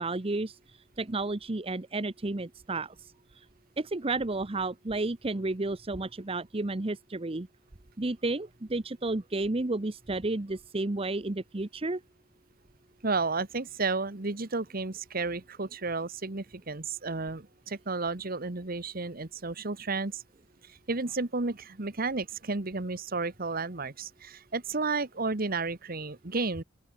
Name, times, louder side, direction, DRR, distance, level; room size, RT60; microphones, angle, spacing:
voice 1, 0.0-3.4 3.8-7.5 8.0-12.0, right 2 dB, 30° right, 0.9 m, -32 dB
voice 2, 13.0-20.2 20.9-26.6, right 3 dB, 50° right, 1.4 m, -32 dB
open air
head